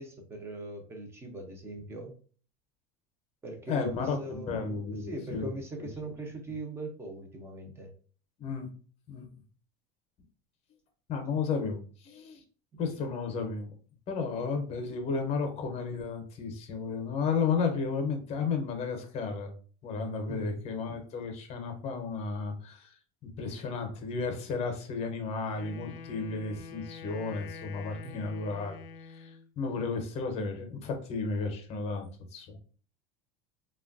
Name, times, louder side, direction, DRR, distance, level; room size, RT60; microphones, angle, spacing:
voice 1, 0.0-2.1 3.4-7.9 11.3-11.4 12.7-12.8 20.3-20.7 28.0-28.4 29.8-29.9, right 2 dB, 15° right, 3 dB, 0.5 m, -41 dB
voice 2, 3.7-5.5 5.8-6.1 8.4-8.7 9.1-9.3 11.1-12.4 12.8-13.7 14.1-19.5 19.8-32.6, left 4 dB, 35° left, 4 dB, 0.7 m, -33 dB
Wind instrument woodwind instrument, 25.5-29.5, left 5 dB, 75° left, 0.5 m, -46 dB
3.1 x 2.3 x 2.5 m, 0.41 s
cardioid pair, 155°, 19 cm